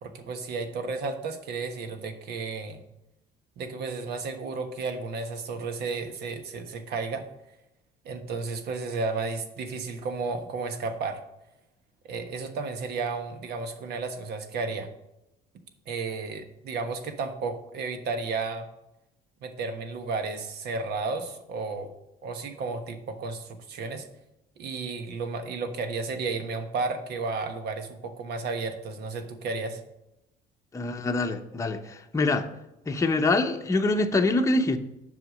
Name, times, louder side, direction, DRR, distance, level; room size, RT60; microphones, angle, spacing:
voice 1, 0.0-2.8 3.6-7.2 8.0-11.2 12.1-14.9 15.9-18.7 19.4-21.9 22.2-24.1 24.6-29.8, right 4 dB, 75° right, 7 dB, 1.3 m, -33 dB
voice 2, 30.7-32.5 32.9-34.8, left 2 dB, 20° left, 4 dB, 0.8 m, -25 dB
8.0 x 5.7 x 6.4 m, 0.89 s
cardioid pair, 110°, 17 cm